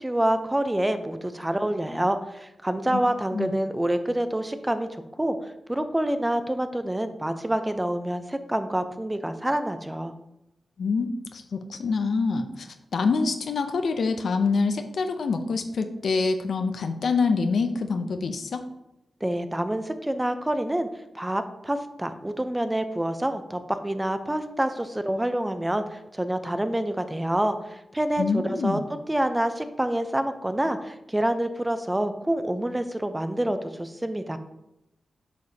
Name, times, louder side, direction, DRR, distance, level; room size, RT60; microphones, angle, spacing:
voice 1, 0.0-10.1 19.2-20.9 21.1-28.8 29.1-34.4, right 1 dB, 15° right, 9 dB, 0.6 m, -27 dB
voice 2, 10.8-18.6 28.2-28.9, left 4 dB, 75° left, 7 dB, 0.5 m, -26 dB
8.2 x 4.9 x 2.8 m, 0.89 s
cardioid pair, 45°, 0 cm